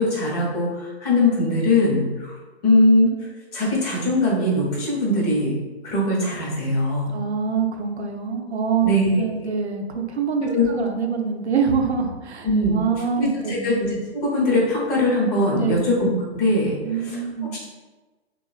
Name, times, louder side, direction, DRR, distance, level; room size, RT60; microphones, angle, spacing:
voice 1, 0.0-2.3 2.6-3.1 3.5-5.5 5.8-7.1 8.8-9.5 10.4-10.7 12.4-17.2, left 1 dB, 35° left, -4 dB, 1.0 m, -21 dB
voice 2, 7.1-8.9 9.2-13.7 15.6-15.8 16.8-17.6, right 6 dB, 85° right, 3 dB, 0.5 m, -25 dB
3.0 x 2.3 x 2.3 m, 1.2 s
figure-of-eight pair, 125°, 32 cm